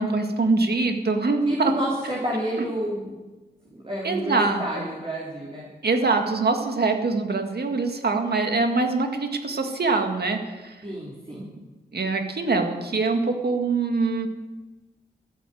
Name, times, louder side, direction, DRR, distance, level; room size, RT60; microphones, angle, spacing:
voice 1, 0.0-1.7 4.0-4.8 5.8-10.8 11.9-14.3, right 3 dB, 65° right, 4 dB, 2.0 m, -24 dB
voice 2, 1.5-3.2 3.6-5.7 10.8-11.5, right 1 dB, 30° right, -5 dB, 3.7 m, -29 dB
13.5 x 9.3 x 7.8 m, 1.2 s
cardioid pair, 65°, 18 cm